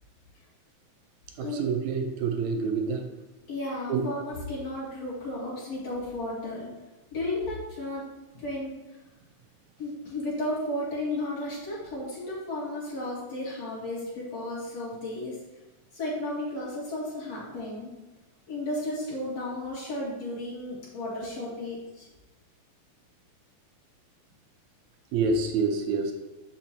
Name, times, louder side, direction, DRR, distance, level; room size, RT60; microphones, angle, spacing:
voice 1, 1.4-3.1 3.9-4.1 25.1-26.1, right 4 dB, 80° right, 3 dB, 2.0 m, -27 dB
voice 2, 3.5-6.7 7.1-8.1 8.3-8.7 9.8-15.4 15.9-17.9 18.5-22.1, left 1 dB, 55° left, -7 dB, 3.2 m, -33 dB
7.2 x 6.8 x 2.9 m, 1.1 s
omnidirectional pair, 3.5 m